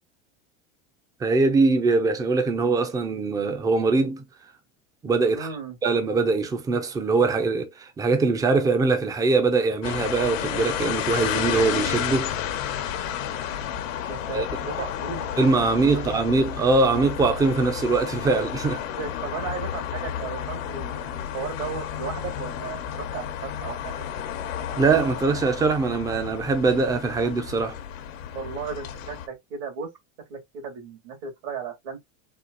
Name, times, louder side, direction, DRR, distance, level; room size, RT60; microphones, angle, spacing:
voice 1, 1.2-4.2 5.0-5.5 5.8-12.3 14.3-14.5 15.4-18.8 24.8-27.8, right 3 dB, 10° right, 0.4 m, -22 dB
voice 2, 5.3-5.8 14.1-15.3 15.9-16.0 16.3-16.4 19.0-24.1 28.3-29.9 30.3-32.0, right 6 dB, 75° right, 2.2 m, -35 dB
sound 1, 9.8-29.3, left 9 dB, 80° left, 0.9 m, -31 dB
4.3 x 2.3 x 2.5 m
supercardioid pair, 135°, 38 cm